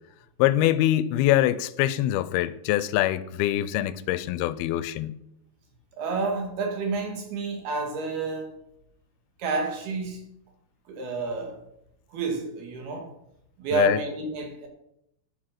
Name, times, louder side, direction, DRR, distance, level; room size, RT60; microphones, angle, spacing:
voice 1, 0.4-5.2 13.7-14.0, left 13 dB, 90° left, 2.5 m, -24 dB
voice 2, 6.0-8.6 9.4-10.3 10.9-11.6 12.1-13.1 13.6-14.7, right 3 dB, 80° right, 4.2 m, -29 dB
10.5 x 9.8 x 6.0 m
omnidirectional pair, 4.4 m